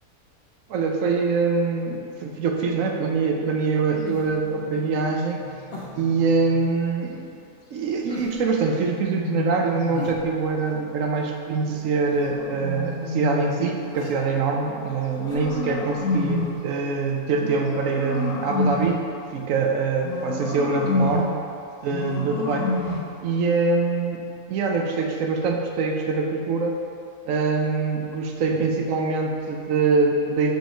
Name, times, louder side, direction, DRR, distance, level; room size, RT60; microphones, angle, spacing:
voice 1, 0.7-5.4 5.9-7.2 7.7-19.0 19.3-21.3 21.8-22.7 23.2-24.2 24.5-26.8 27.2-30.5, right 4 dB, 70° right, 1 dB, 0.9 m, -24 dB
sound 1, 4.0-4.5 5.7-6.1 8.1-8.6 9.9-10.7 12.1-12.4 13.9-14.2 15.2-16.2 16.5-16.6, equal, 45° left, 1.0 m, -38 dB
sound 2, 4.4-6.8 8.4-10.2 11.6-13.6 14.6-16.7 17.3-19.1 20.0-21.4 21.9-23.1, left 3 dB, 80° left, 1.2 m, -30 dB
5.5 x 4.6 x 4.4 m, 2.5 s
omnidirectional pair, 1.6 m